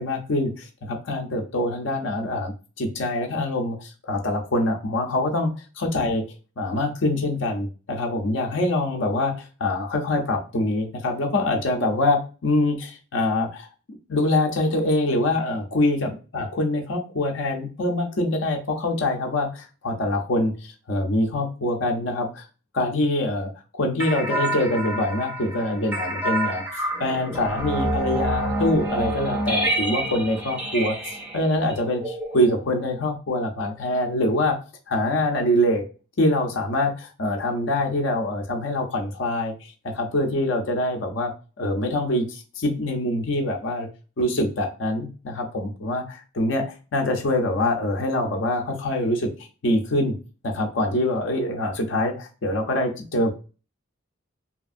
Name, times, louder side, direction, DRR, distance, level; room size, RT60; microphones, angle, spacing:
voice 1, 0.0-6.2 6.6-13.7 14.1-22.5 22.7-34.6 34.9-35.8 36.2-41.3 41.6-43.9 44.2-49.3 49.6-50.2 50.4-53.3, left 1 dB, 60° left, 3 dB, 0.5 m, -24 dB
sound 1, 24.0-32.9, right 1 dB, 5° right, 0.5 m, -28 dB
2.9 x 2.4 x 2.4 m, 0.34 s
head